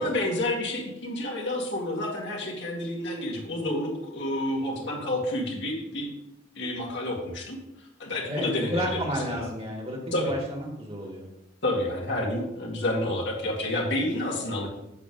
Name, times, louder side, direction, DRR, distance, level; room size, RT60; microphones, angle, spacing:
voice 1, 0.0-6.1 6.6-7.6 8.0-9.0 9.3-9.5 10.1-10.3 11.6-14.7, left 1 dB, 65° left, -2 dB, 2.2 m, -29 dB
voice 2, 8.3-11.3, equal, 30° right, 1 dB, 2.0 m, -31 dB
8.8 x 6.6 x 3.9 m, 0.86 s
head